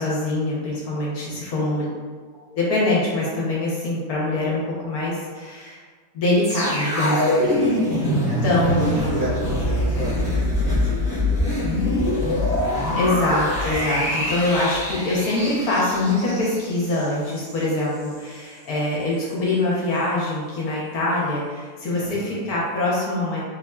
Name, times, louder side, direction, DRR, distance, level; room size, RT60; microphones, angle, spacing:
voice 1, 0.0-1.9 2.5-5.8 6.1-7.5 8.4-9.1 12.9-23.4, left 2 dB, 70° left, -6 dB, 1.2 m, -24 dB
sound 1, 6.4-17.6 18.0-18.1, left 1 dB, 45° right, 1.5 m, -24 dB
voice 2, 7.4-12.2 21.9-22.4, right 1 dB, 10° right, -12 dB, 0.9 m, -32 dB
4.1 x 2.5 x 2.2 m, 1.5 s
omnidirectional pair, 1.7 m